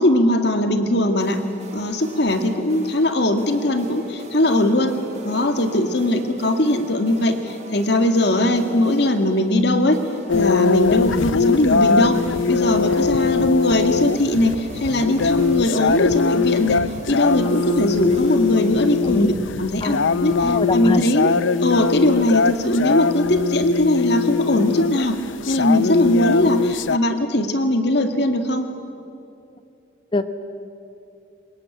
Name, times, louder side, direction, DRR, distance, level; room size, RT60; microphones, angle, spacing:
voice 1, 0.0-1.4 1.7-4.9 5.2-10.0 10.3-12.2 12.5-16.8 17.1-19.3 19.6-21.3 21.6-25.2 25.5-28.7, left 1 dB, 55° left, 7 dB, 2.0 m, -20 dB
sound 1, 1.2-19.8, right 1 dB, 35° right, 2.7 m, -41 dB
sound 2, 10.3-27.0, left 5 dB, 75° left, 0.6 m, -21 dB
voice 2, 20.4-21.0 30.1-30.3, left 2 dB, 25° left, 10 dB, 1.1 m, -23 dB
24.5 x 21.0 x 9.0 m, 2.6 s
head